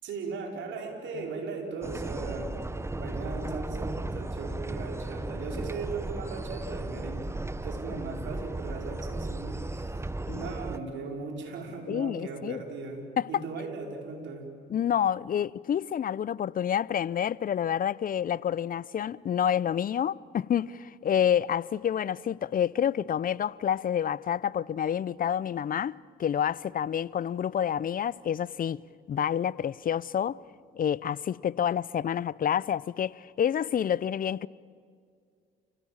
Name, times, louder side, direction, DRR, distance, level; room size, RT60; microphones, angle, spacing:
voice 1, 0.0-7.3 7.6-9.9 10.3-13.0 13.3-14.5, right 4 dB, 65° right, 5.0 m, -38 dB
sound 1, 1.8-10.8, right 2 dB, 15° right, 1.0 m, -35 dB
voice 2, 11.9-12.6 13.2-13.4 14.7-28.8 29.1-30.4 30.7-34.5, left 9 dB, 45° left, 0.6 m, -28 dB
29.5 x 17.0 x 8.8 m
supercardioid pair, 60°, 20 cm